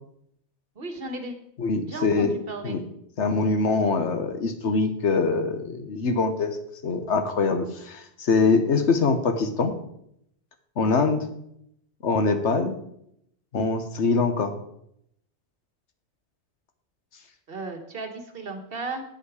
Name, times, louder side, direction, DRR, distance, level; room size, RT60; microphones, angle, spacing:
voice 1, 0.7-1.3 1.9-2.8 17.5-19.0, right 2 dB, 55° right, 6 dB, 1.4 m, -35 dB
voice 2, 1.6-2.4 2.6-2.8 3.2-6.6 6.8-9.8 10.8-11.3 12.0-12.8 13.5-14.5, left 4 dB, 75° left, 7 dB, 1.4 m, -23 dB
9.3 x 8.3 x 4.9 m, 0.74 s
omnidirectional pair, 1.2 m